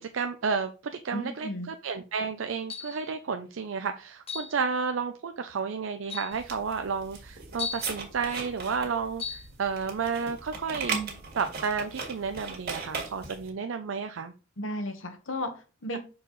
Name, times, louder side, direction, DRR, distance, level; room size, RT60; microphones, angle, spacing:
voice 1, 0.0-11.0 11.3-14.3 15.9-16.0, right 5 dB, 70° right, 0.5 m, -32 dB
voice 2, 1.1-1.7 14.6-16.0, left 1 dB, 75° left, 1.3 m, -34 dB
sound 1, 2.7-3.1 4.3-4.6 5.5-5.6 6.1-6.4 7.6-7.9 9.2-9.5, left 5 dB, 30° left, 0.9 m, -36 dB
sound 2, 6.3-13.5, right 5 dB, 50° right, 1.9 m, -38 dB
6.3 x 4.7 x 3.9 m
head